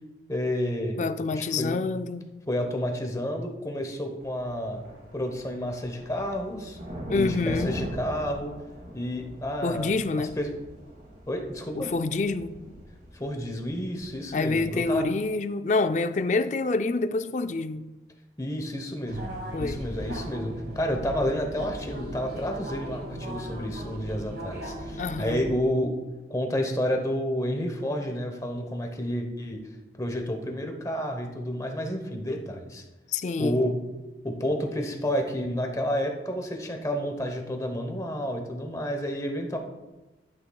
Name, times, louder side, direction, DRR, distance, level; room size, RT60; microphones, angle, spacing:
voice 1, 0.3-1.0 1.3-1.8 2.5-4.8 5.1-6.8 7.1-8.5 8.9-10.5 11.3-11.9 13.1-15.0 18.4-25.9 26.3-29.6 30.0-32.8 33.4-33.7 34.2-39.6, equal, 20° left, 0.9 m, -30 dB
voice 2, 1.0-2.4 7.1-7.8 9.6-10.4 11.7-12.6 14.3-17.9 19.5-19.8 25.0-25.4 33.1-33.6, left 3 dB, 40° left, 0.4 m, -27 dB
sound 1, 4.2-15.0, equal, 45° right, 2.1 m, -42 dB
sound 2, 19.1-25.5, right 1 dB, 65° right, 2.2 m, -37 dB
11.5 x 8.8 x 2.3 m
head